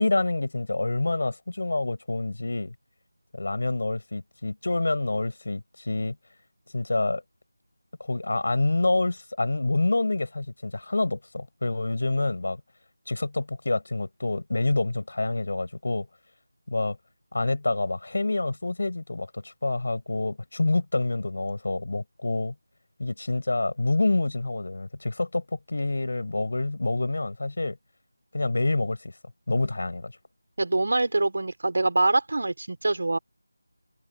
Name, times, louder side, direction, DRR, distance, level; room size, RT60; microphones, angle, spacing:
voice 1, 0.0-2.7 3.3-6.1 6.7-7.2 8.0-12.6 13.1-16.1 16.7-17.0 17.3-22.5 23.0-27.8 28.3-29.1 29.5-30.1, left 2 dB, 60° left, 5.2 m, -27 dB
voice 2, 30.6-33.2, right 2 dB, 55° right, 5.0 m, -24 dB
figure-of-eight pair, 175°, 0 cm